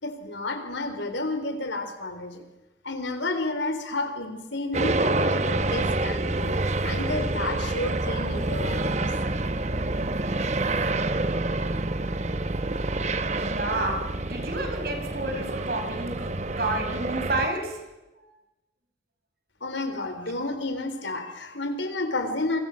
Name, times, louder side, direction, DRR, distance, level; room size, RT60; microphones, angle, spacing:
voice 1, 0.0-2.4 2.8-6.5 6.8-9.1 19.6-22.6, left 2 dB, 80° left, 7 dB, 3.8 m, -31 dB
sound 1, 4.7-17.5, right 2 dB, 35° right, 1.0 m, -27 dB
voice 2, 13.0-16.3 16.6-17.8, right 2 dB, 55° right, 4 dB, 5.3 m, -30 dB
27.5 x 24.5 x 6.5 m, 1.0 s
head